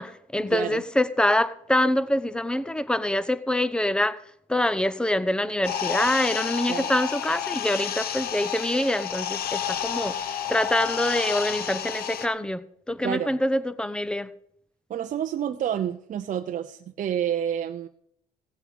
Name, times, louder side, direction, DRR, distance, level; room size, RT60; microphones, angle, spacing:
voice 1, 0.0-4.2 4.5-10.1 10.5-14.3, left 1 dB, 5° left, 1.0 m, -25 dB
voice 2, 0.5-0.8 6.7-6.9 13.0-13.3 14.9-17.9, right 9 dB, 50° right, 0.8 m, -29 dB
sound 1, 5.6-12.3, left 9 dB, 65° left, 1.1 m, -30 dB
16.0 x 8.3 x 5.4 m
supercardioid pair, 70°, 17 cm